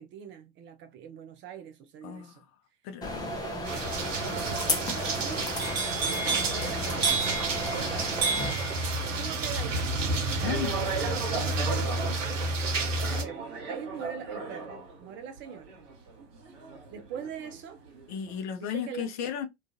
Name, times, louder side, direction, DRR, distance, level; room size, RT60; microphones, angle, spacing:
voice 1, 0.0-2.4 3.4-3.8 4.2-5.5 6.0-7.2 7.7-8.3 9.0-10.1 10.4-13.4 13.7-15.7 16.9-17.8 18.6-19.3, right 8 dB, 35° right, 0.4 m, -42 dB
voice 2, 2.0-2.5 2.8-3.4 7.8-7.9 10.3-10.7 18.1-19.5, left 8 dB, 45° left, 0.6 m, -35 dB
sound 1, 3.0-8.5, left 1 dB, 10° left, 0.6 m, -34 dB
sound 2, 3.6-13.2, right 2 dB, 85° right, 0.6 m, -31 dB
sound 3, 5.6-17.5 17.9-18.3, right 4 dB, 55° right, 1.1 m, -34 dB
2.4 x 2.3 x 2.5 m
figure-of-eight pair, 75°, 37 cm